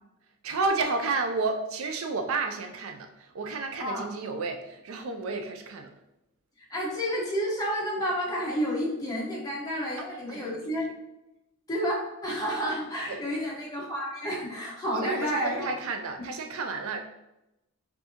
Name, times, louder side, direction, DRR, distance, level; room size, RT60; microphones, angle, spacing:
voice 1, 0.4-5.9 10.0-10.7 13.1-13.2 15.0-17.0, right 3 dB, 65° right, 5 dB, 0.4 m, -31 dB
voice 2, 6.6-10.9 11.7-15.7, equal, 15° left, -4 dB, 1.1 m, -30 dB
5.4 x 2.7 x 2.8 m, 0.92 s
head